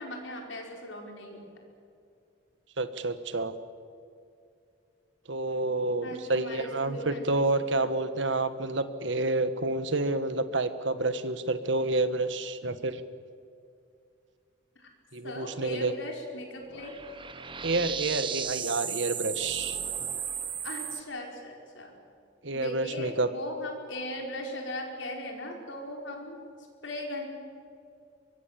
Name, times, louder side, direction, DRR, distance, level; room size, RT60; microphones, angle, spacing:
voice 1, 0.0-1.5 6.0-7.2 7.5-7.9 14.8-14.9 15.2-17.0 20.6-21.9 22.5-26.4 26.8-27.3, left 1 dB, 70° left, 2 dB, 4.8 m, -38 dB
voice 2, 2.8-3.6 5.3-13.0 15.1-15.9 17.6-19.8 22.4-23.3, right 2 dB, 70° right, 11 dB, 1.4 m, -29 dB
sound 1, 16.7-21.0, right 7 dB, 25° right, 1.0 m, -35 dB
23.5 x 23.0 x 7.5 m, 2.4 s
head